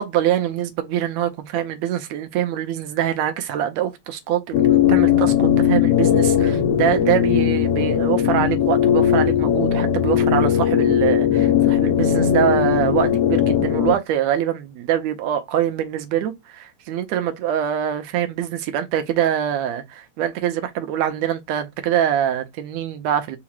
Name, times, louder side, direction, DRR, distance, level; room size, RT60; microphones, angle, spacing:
voice 1, 0.0-23.4, right 10 dB, 80° right, 1.9 m, -24 dB
sound 1, 4.5-14.0, left 9 dB, 75° left, 1.4 m, -18 dB
4.8 x 2.0 x 4.4 m
omnidirectional pair, 3.3 m